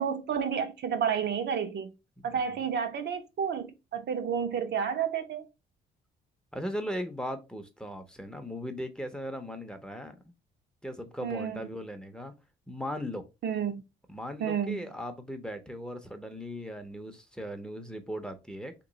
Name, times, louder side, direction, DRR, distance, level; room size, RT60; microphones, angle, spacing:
voice 1, 0.0-1.9 2.2-5.5 11.2-11.7 13.4-13.8 14.4-14.9, right 7 dB, 60° right, 0.7 m, -30 dB
voice 2, 2.2-2.6 6.5-10.1 10.8-12.3 12.7-13.3 14.1-18.7, equal, 5° left, 0.6 m, -38 dB
3.0 x 2.9 x 3.9 m
cardioid pair, 90°, 20 cm